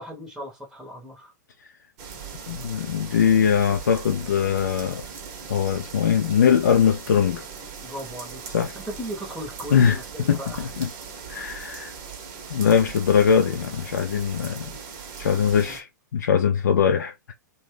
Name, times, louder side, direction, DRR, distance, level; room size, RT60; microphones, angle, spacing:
voice 1, 0.0-1.3 7.8-8.4 8.7-10.7 15.3-15.8, equal, 5° right, 0.9 m, -37 dB
sound 1, 2.0-15.8, right 6 dB, 40° right, 0.8 m, -39 dB
voice 2, 2.5-5.0 5.5-7.4 8.5-8.7 9.7-10.0 10.3-10.9 11.3-11.9 12.5-14.7 15.2-17.1, left 7 dB, 70° left, 0.4 m, -21 dB
2.7 x 2.2 x 3.4 m
figure-of-eight pair, 105°, 10 cm